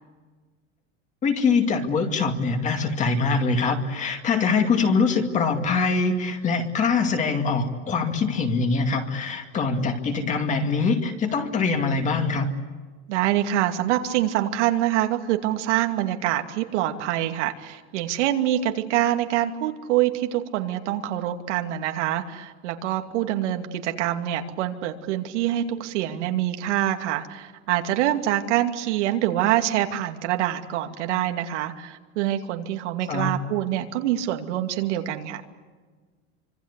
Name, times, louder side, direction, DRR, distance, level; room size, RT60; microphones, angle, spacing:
voice 1, 1.2-12.5 33.1-33.3, left 4 dB, 20° left, 5 dB, 2.3 m, -23 dB
voice 2, 13.1-35.4, right 12 dB, 85° right, 5 dB, 2.6 m, -25 dB
26.0 x 25.5 x 8.3 m, 1.4 s
supercardioid pair, 175°, 34 cm